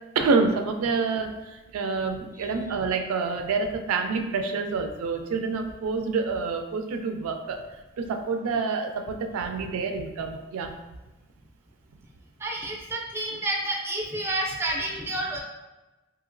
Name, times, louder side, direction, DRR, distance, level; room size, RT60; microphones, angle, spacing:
voice 1, 0.2-7.6 8.0-10.7, right 4 dB, 85° right, 5 dB, 0.3 m, -27 dB
voice 2, 12.4-15.4, right 1 dB, 10° right, -1 dB, 0.4 m, -30 dB
2.9 x 2.8 x 2.5 m, 1.1 s
head